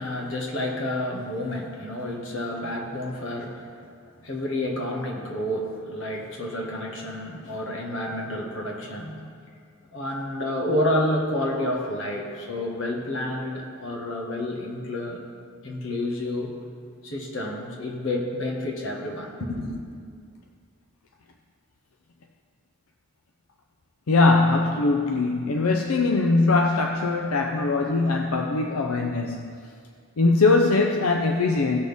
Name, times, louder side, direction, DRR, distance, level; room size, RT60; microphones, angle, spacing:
voice 1, 0.0-3.8 4.2-9.3 9.9-15.2 15.6-16.6 17.0-19.8, left 1 dB, 60° left, -1 dB, 1.6 m, -29 dB
voice 2, 24.1-29.5 30.2-31.8, left 3 dB, 85° left, 3 dB, 0.6 m, -21 dB
17.0 x 6.3 x 3.5 m, 2.2 s
head